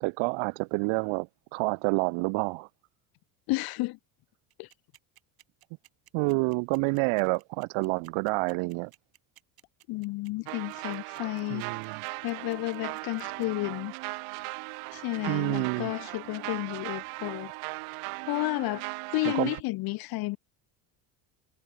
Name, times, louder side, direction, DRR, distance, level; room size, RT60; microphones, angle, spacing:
voice 1, 0.0-2.7 6.1-8.9 11.5-12.0 15.3-15.9 19.3-19.5, right 30 dB, 75° right, 0.6 m, -28 dB
voice 2, 3.5-4.0 4.6-4.7 9.9-11.7 12.2-13.9 14.9-17.5 18.3-18.8 19.1-20.4, left 21 dB, 50° left, 0.5 m, -31 dB
sound 1, 4.5-13.5, right 13 dB, 45° right, 4.4 m, -57 dB
sound 2, 7.3-7.5 8.5-8.7 9.6-9.7 10.8-10.9, left 23 dB, 75° left, 5.9 m, -57 dB
sound 3, 10.5-19.6, right 30 dB, 90° right, 1.7 m, -38 dB
cardioid pair, 160°, 49 cm